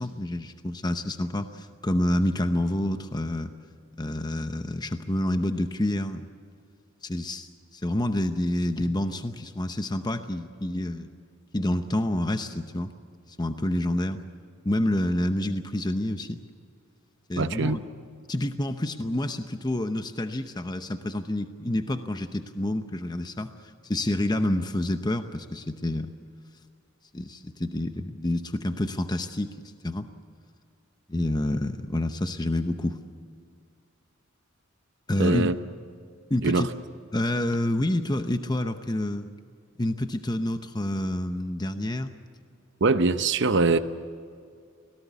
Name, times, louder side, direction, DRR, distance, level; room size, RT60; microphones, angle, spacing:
voice 1, 0.0-3.5 4.0-6.2 7.0-11.1 11.5-12.9 13.3-14.2 14.6-16.4 17.3-17.8 18.3-26.1 27.1-29.6 29.8-30.1 31.1-33.0 35.1-35.5 36.3-36.7 37.1-39.3 39.8-42.1, left 1 dB, 20° left, 8 dB, 0.8 m, -28 dB
voice 2, 17.4-17.8 35.2-35.5 36.4-36.7 42.8-43.8, right 3 dB, 60° right, 10 dB, 0.8 m, -22 dB
24.5 x 18.0 x 8.3 m, 2.2 s
head